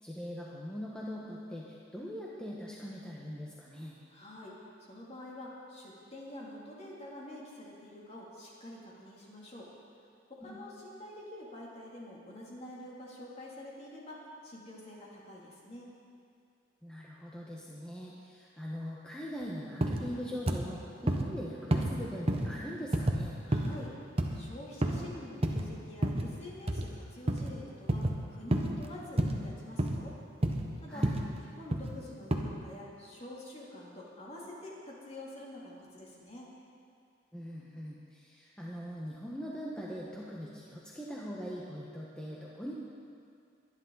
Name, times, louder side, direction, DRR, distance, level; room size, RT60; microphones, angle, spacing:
voice 1, 0.0-4.0 10.4-10.6 16.8-23.4 30.9-31.2 37.3-42.7, equal, 5° left, -5 dB, 1.2 m, -41 dB
voice 2, 4.1-9.7 10.3-15.9 23.5-23.9 24.3-30.2 30.8-31.0 31.3-36.5, left 1 dB, 35° left, -5 dB, 2.9 m, -47 dB
sound 1, 19.8-20.0 20.5-20.6 21.1-21.3 21.7-21.9 22.3-22.5 22.9-23.2 23.5-23.8 24.2-24.4 24.8-25.0 25.4-25.6 26.0-26.3 26.7-26.9 27.3-27.5 27.9-28.2 28.5-28.7 29.2-29.4 29.8-30.0 30.4-30.7 31.0-31.2 31.7-31.9 32.3-32.4, right 1 dB, 30° right, 1.1 m, -29 dB
22.5 x 10.5 x 4.0 m, 2.3 s
head